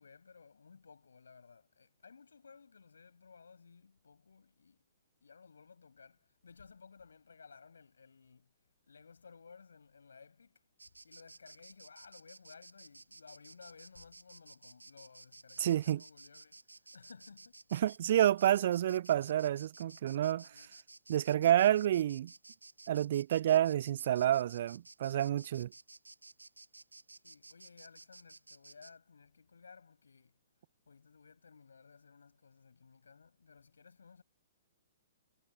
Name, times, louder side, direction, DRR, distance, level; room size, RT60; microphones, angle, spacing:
voice 1, 0.0-4.9 5.2-8.5 8.9-10.6 11.0-17.6 20.5-20.8 27.1-30.4 30.9-34.2, left 5 dB, 70° left, 7.6 m, -58 dB
Insect, 10.8-28.9, right 2 dB, 80° right, 1.1 m, -55 dB
voice 2, 15.6-16.0 17.7-20.5 21.1-22.3 22.9-25.7, right 11 dB, 50° right, 0.4 m, -29 dB
figure-of-eight pair, 120°, 0 cm